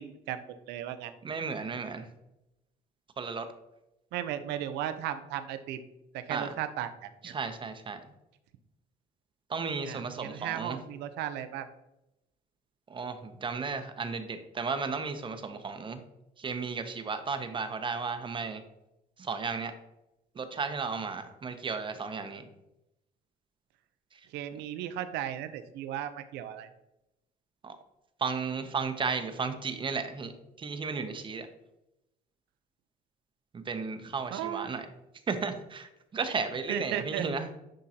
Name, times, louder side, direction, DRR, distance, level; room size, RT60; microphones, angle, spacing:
voice 1, 0.0-1.1 4.1-5.8 6.1-7.4 9.8-11.7 24.3-26.7 34.3-34.7 36.7-37.3, right 11 dB, 85° right, 11 dB, 0.6 m, -36 dB
voice 2, 1.2-2.1 3.2-3.5 6.3-6.5 7.2-8.0 9.5-10.8 12.9-16.0 16.4-18.6 19.2-19.7 20.3-22.5 24.1-24.3 27.6-27.8 28.2-30.3 30.6-31.5 33.5-34.9 35.3-37.5, right 5 dB, 30° right, 9 dB, 0.7 m, -34 dB
10.0 x 3.7 x 2.8 m, 0.90 s
cardioid pair, 110°, 17 cm